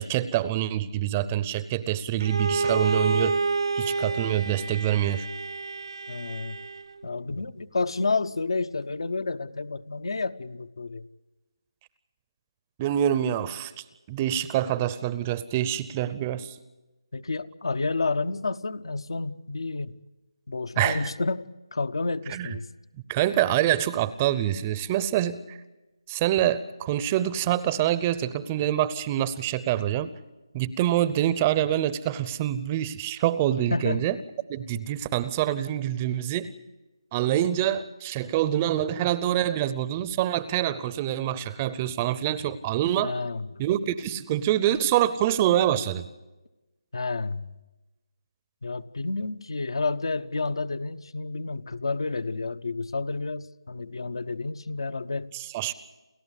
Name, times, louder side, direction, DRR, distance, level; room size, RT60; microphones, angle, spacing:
voice 1, 0.0-3.4 3.7-5.3 12.8-16.6 20.8-21.1 22.3-22.5 23.1-25.6 26.1-30.1 30.5-34.2 34.5-36.5 37.1-43.1 43.6-46.1 55.3-55.7, right 12 dB, 20° right, 16 dB, 0.6 m, -26 dB
Bowed string instrument, 2.2-7.0, right 4 dB, 70° right, 0.8 m, -29 dB
voice 2, 6.1-6.6 7.0-11.0 17.1-20.0 20.5-22.7 33.7-34.0 37.2-37.3 43.0-43.6 46.9-47.5 48.6-55.3, left 3 dB, 70° left, 13 dB, 0.9 m, -30 dB
29.0 x 14.0 x 8.2 m, 1.1 s
figure-of-eight pair, 160°, 3 cm